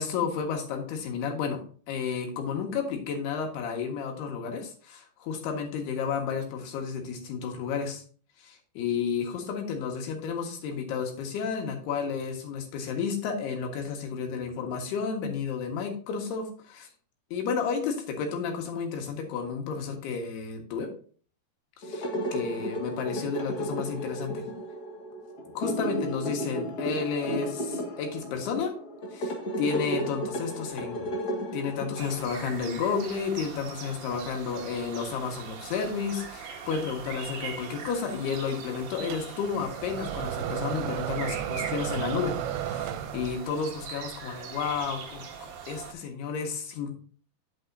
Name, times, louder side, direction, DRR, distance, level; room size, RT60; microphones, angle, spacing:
voice 1, 0.0-1.6 1.9-8.0 8.4-16.9 17.3-20.9 21.8-24.4 25.6-28.7 29.1-31.2 31.5-46.9, left 6 dB, 90° left, 2 dB, 3.6 m, -32 dB
sound 1, 21.8-32.6, equal, 70° left, 0.9 m, -34 dB
sound 2, 32.0-45.9, right 6 dB, 60° right, 2.6 m, -41 dB
sound 3, 39.1-43.6, right 10 dB, 90° right, 2.7 m, -33 dB
8.7 x 8.3 x 2.6 m, 0.43 s
omnidirectional pair, 4.5 m